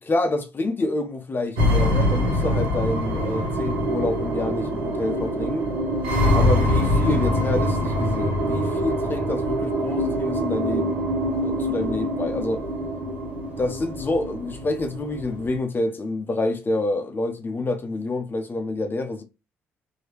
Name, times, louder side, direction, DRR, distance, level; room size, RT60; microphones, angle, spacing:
voice 1, 0.0-5.7 6.3-11.1 11.4-12.7 13.6-19.2, left 2 dB, 35° left, 0.7 m, -27 dB
sound 1, 1.6-15.6, equal, 85° right, 1.1 m, -24 dB
3.1 x 2.8 x 2.9 m
hypercardioid pair, 50°, 6 cm